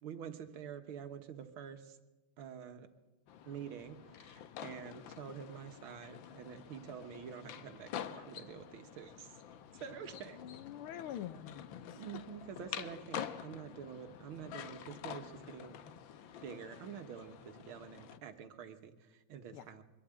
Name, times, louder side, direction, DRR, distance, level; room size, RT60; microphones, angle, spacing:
voice 1, 0.0-2.0 2.4-2.9 3.4-9.4 9.7-10.4 11.9-15.7 16.4-19.8, right 8 dB, 75° right, 8 dB, 2.1 m, -47 dB
sound 1, 3.3-18.2, left 9 dB, 70° left, 1.5 m, -48 dB
voice 2, 10.3-12.2 19.5-19.7, left 11 dB, 85° left, 13 dB, 1.8 m, -46 dB
23.5 x 12.5 x 8.8 m, 1.1 s
omnidirectional pair, 2.3 m